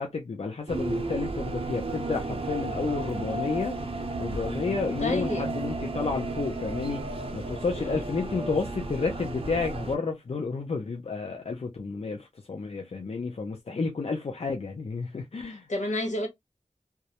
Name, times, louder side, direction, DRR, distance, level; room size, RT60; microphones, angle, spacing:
voice 1, 0.0-3.8 4.2-15.7, left 4 dB, 55° left, 0.5 m, -31 dB
sound 1, 0.7-10.0, right 2 dB, 50° right, 0.6 m, -33 dB
voice 2, 5.0-5.5 7.8-8.0 15.7-16.3, left 1 dB, 75° left, 0.9 m, -30 dB
2.2 x 2.0 x 2.8 m
wide cardioid pair, 50°, 13 cm